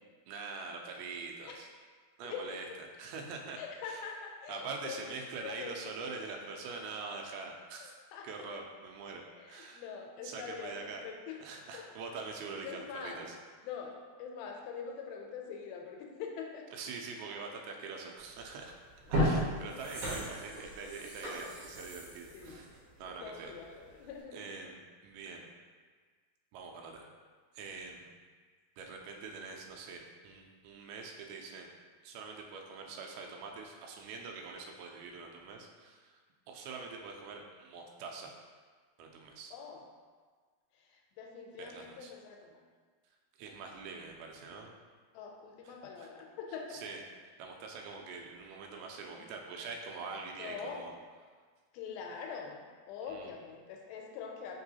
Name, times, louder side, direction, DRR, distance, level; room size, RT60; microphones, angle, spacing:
voice 1, 0.3-1.7 2.2-4.1 4.5-8.0 8.2-9.2 9.5-9.9 10.2-11.0 11.4-13.4 16.7-18.7 19.2-22.7 23.0-23.5 24.3-25.5 26.5-27.1 27.5-28.1 28.8-31.7 32.0-36.1 36.5-38.3 39.0-39.5 41.6-42.1 43.4-44.7 45.7-46.1 46.7-47.0 47.4-50.9 53.1-53.3, right 4 dB, 90° right, 1 dB, 2.4 m, -44 dB
voice 2, 2.2-2.6 3.6-5.7 7.8-8.3 9.4-10.8 11.0-11.4 11.7-11.8 12.6-13.2 13.6-13.9 14.2-16.7 19.2-19.5 22.3-22.6 23.2-24.2 39.5-39.8 40.9-42.6 45.1-46.8 49.1-49.2 50.4-50.8 51.7-54.6, left 6 dB, 85° left, 1 dB, 2.4 m, -44 dB
sound 1, 18.3-18.5 18.9-23.6 24.0-24.1, equal, 65° right, 2.3 m, -35 dB
5.4 x 2.9 x 2.7 m, 1.5 s
omnidirectional pair, 4.2 m